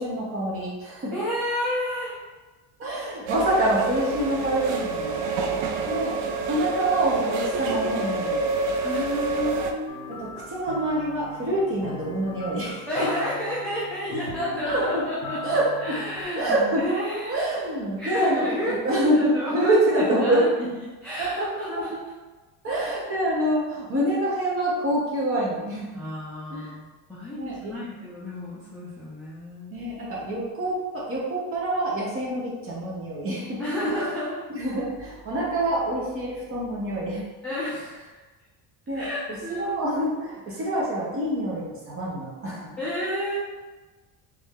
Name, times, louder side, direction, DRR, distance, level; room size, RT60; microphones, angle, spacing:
voice 1, 0.0-1.1 2.8-5.2 5.9-6.2 6.5-8.4 9.6-9.7 10.1-13.1 14.6-15.0 15.4-16.0 16.3-16.8 17.3-20.4 21.2-21.8 22.6-25.9 26.5-26.7 27.4-27.7 29.7-34.0 34.5-37.2 38.9-42.6, right 1 dB, 30° right, -5 dB, 0.8 m, -26 dB
voice 2, 1.1-2.2 8.8-10.1 12.9-17.4 18.0-20.7 21.0-22.0 25.9-26.8 27.1-29.8 33.6-34.4 37.4-38.2 38.9-39.7 42.8-43.4, left 1 dB, 5° left, -12 dB, 0.3 m, -30 dB
sound 1, 3.3-9.7, right 3 dB, 75° right, 0.6 m, -27 dB
sound 2, 9.9-16.2, left 3 dB, 50° left, 0.6 m, -39 dB
3.3 x 2.6 x 3.6 m, 1.2 s
cardioid pair, 170°, 48 cm